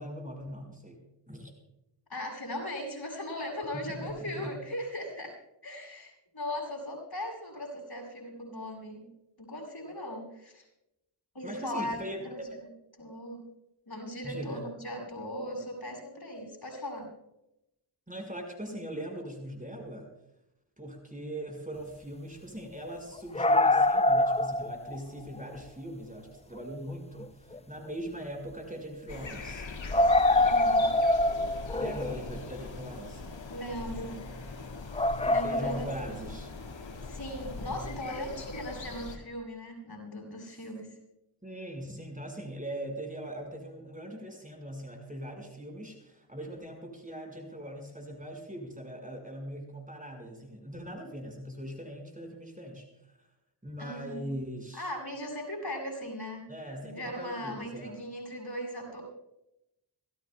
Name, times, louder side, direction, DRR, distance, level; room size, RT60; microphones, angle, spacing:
voice 1, 0.0-1.5 3.7-4.5 11.4-12.6 14.2-14.6 18.1-20.1 20.8-29.6 31.8-33.2 35.2-36.5 40.4-40.7 41.4-53.3 53.6-54.9 56.5-58.0, equal, 15° right, 2 dB, 5.3 m, -41 dB
voice 2, 2.1-9.1 9.4-10.7 11.3-12.7 13.0-13.4 13.9-17.1 30.3-30.9 31.7-32.0 33.5-34.2 35.3-36.2 37.0-41.0 53.8-54.3 54.7-56.4 56.8-59.0, left 1 dB, 55° left, 0 dB, 7.0 m, -38 dB
sound 1, 23.2-25.0 25.3-25.5 26.6-26.7 27.2-27.3 27.5-27.6 29.9-32.2 34.9-35.9 37.4-37.5, left 1 dB, 15° left, 0.5 m, -24 dB
sound 2, 29.1-39.2, left 3 dB, 80° left, 2.0 m, -41 dB
26.0 x 16.5 x 2.3 m, 0.86 s
cardioid pair, 45°, 45 cm